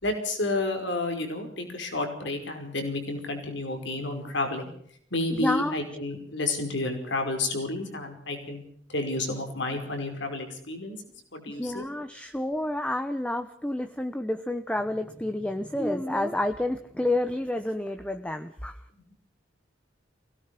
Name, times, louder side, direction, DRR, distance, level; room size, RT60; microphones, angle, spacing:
voice 1, 0.0-4.7 5.1-8.6 8.9-11.0 11.3-11.9, left 2 dB, 65° left, 5 dB, 5.1 m, -30 dB
voice 2, 5.3-5.7 11.5-18.8, left 1 dB, 5° left, 7 dB, 1.0 m, -29 dB
24.5 x 18.0 x 6.0 m, 0.64 s
head